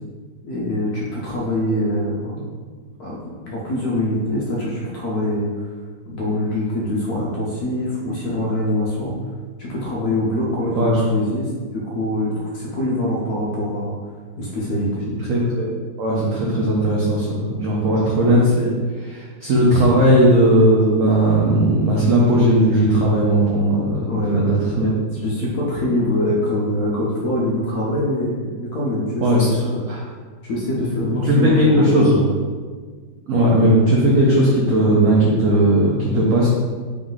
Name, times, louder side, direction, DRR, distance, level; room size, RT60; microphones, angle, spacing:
voice 1, 0.4-2.5 3.0-3.2 3.5-5.7 6.1-9.2 9.6-14.0 14.4-15.0 24.1-24.6 25.2-29.8 30.4-32.4, left 1 dB, 65° left, -5 dB, 1.0 m, -24 dB
voice 2, 15.3-15.7 16.0-24.9 29.2-29.5 29.9-30.0 31.2-32.1 33.3-36.5, right 1 dB, 80° right, -5 dB, 0.7 m, -17 dB
3.6 x 3.1 x 3.8 m, 1.5 s
omnidirectional pair, 2.3 m